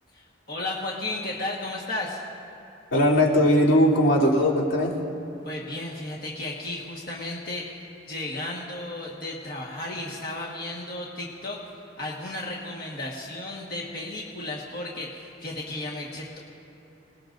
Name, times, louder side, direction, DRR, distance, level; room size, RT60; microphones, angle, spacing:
voice 1, 0.1-2.2 5.4-11.6 12.0-16.4, left 2 dB, 50° left, -3 dB, 1.5 m, -34 dB
voice 2, 2.9-4.9, left 1 dB, 90° left, -5 dB, 3.3 m, -19 dB
26.0 x 20.0 x 2.6 m, 2.8 s
head